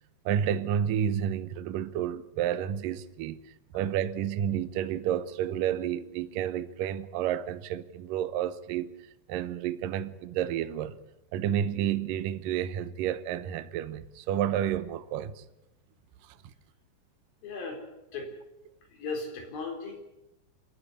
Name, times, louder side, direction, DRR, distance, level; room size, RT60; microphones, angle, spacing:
voice 1, 0.3-8.9 9.3-11.0 11.3-15.4 16.2-16.4, right 10 dB, 80° right, 2.0 m, -30 dB
voice 2, 17.4-17.8 18.1-18.3 18.9-19.9, left 4 dB, 55° left, 5.7 m, -36 dB
28.0 x 10.0 x 9.8 m
omnidirectional pair, 5.1 m